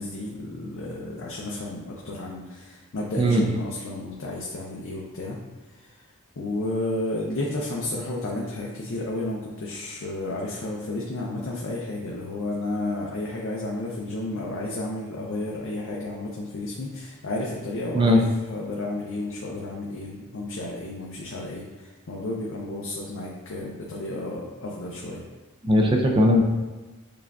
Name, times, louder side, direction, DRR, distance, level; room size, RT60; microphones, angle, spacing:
voice 1, 0.0-5.4 5.7-6.1 6.4-25.2, left 2 dB, 60° left, -3 dB, 0.5 m, -32 dB
voice 2, 25.6-26.4, equal, 25° right, 1 dB, 0.4 m, -19 dB
6.7 x 2.4 x 2.3 m, 1.2 s
head